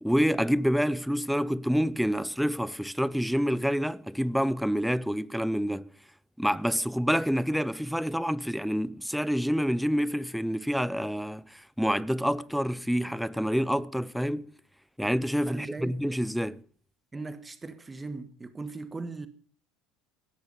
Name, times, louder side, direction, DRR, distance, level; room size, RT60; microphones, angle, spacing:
voice 1, 0.0-5.9 6.4-14.5 15.0-16.6, equal, ahead, 0.6 m, -27 dB
voice 2, 15.5-15.9 17.1-19.3, right 3 dB, 15° right, 1.4 m, -38 dB
17.5 x 13.0 x 5.3 m
figure-of-eight pair, 70°, 0 cm